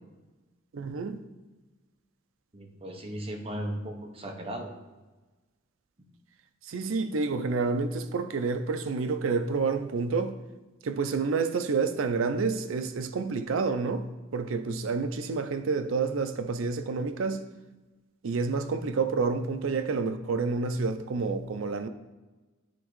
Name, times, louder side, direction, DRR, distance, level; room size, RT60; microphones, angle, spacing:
voice 1, 0.7-1.2 6.7-10.4 10.8-14.0 14.3-17.4 18.2-21.9, right 4 dB, 80° right, 0.5 m, -29 dB
voice 2, 2.5-4.8, right 1 dB, 30° right, 0.9 m, -36 dB
10.0 x 3.5 x 3.1 m
head